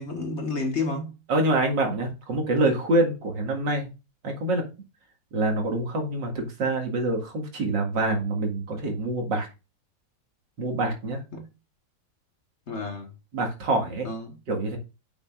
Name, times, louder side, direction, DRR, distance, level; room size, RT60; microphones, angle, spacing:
voice 1, 0.0-1.2 11.3-11.4 12.7-13.1 14.0-14.4, left 3 dB, 40° left, 1.4 m, -30 dB
voice 2, 1.3-3.9 4.2-4.6 5.3-9.5 10.6-11.2 13.3-14.1 14.5-14.8, right 2 dB, 75° right, 2.6 m, -26 dB
8.6 x 6.1 x 2.4 m
omnidirectional pair, 2.0 m